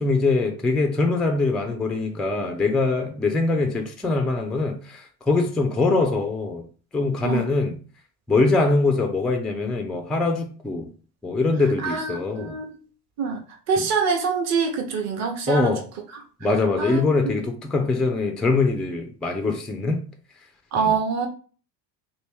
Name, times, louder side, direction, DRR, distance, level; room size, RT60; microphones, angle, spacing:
voice 1, 0.0-6.7 6.9-7.8 8.3-10.9 11.2-12.6 13.8-13.9 15.5-15.8 16.4-20.0 20.8-21.0, left 3 dB, ahead, 0.3 m, -23 dB
voice 2, 11.8-12.8 13.2-13.4 13.7-15.7 16.8-17.3 20.7-21.3, right 5 dB, 35° right, 0.9 m, -25 dB
3.0 x 2.6 x 3.4 m
hypercardioid pair, 80°, 50 cm